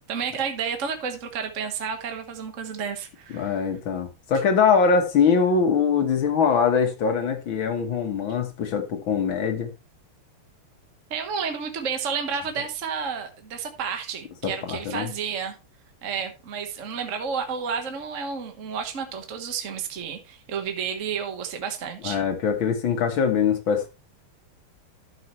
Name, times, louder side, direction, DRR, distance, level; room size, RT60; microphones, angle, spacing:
voice 1, 0.1-3.6 11.1-15.6 16.0-22.2, right 6 dB, 40° right, 1.5 m, -31 dB
voice 2, 3.3-9.7 14.4-15.1 22.0-23.9, left 6 dB, 65° left, 2.1 m, -22 dB
12.5 x 6.5 x 3.1 m
omnidirectional pair, 2.4 m